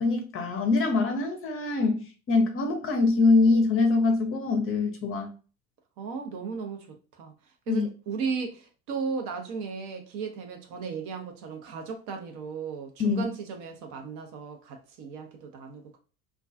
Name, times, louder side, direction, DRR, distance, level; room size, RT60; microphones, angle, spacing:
voice 1, 0.0-5.3 7.7-7.9 13.0-13.3, left 3 dB, 30° left, 0.6 m, -24 dB
voice 2, 6.0-6.9 7.1-7.3 7.7-16.0, right 5 dB, 45° right, 0.6 m, -35 dB
2.3 x 2.2 x 2.4 m
figure-of-eight pair, 70°, 43 cm